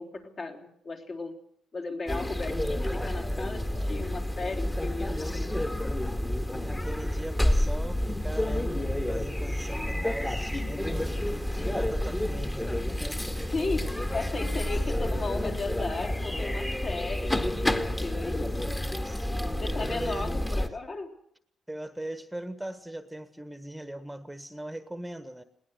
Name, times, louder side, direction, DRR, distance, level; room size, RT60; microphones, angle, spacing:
voice 1, 0.0-1.3 1.7-5.7 11.5-11.7 13.5-18.5 19.6-21.1, left 3 dB, 45° left, 2 dB, 3.8 m, -36 dB
sound 1, 2.1-20.7, left 1 dB, 15° left, 1.7 m, -29 dB
voice 2, 6.6-8.8 9.1-13.9 14.2-14.7 19.0-20.3 21.7-25.4, right 1 dB, 5° right, 10 dB, 1.4 m, -40 dB
20.5 x 18.5 x 8.0 m, 0.69 s
cardioid pair, 90°, 0 cm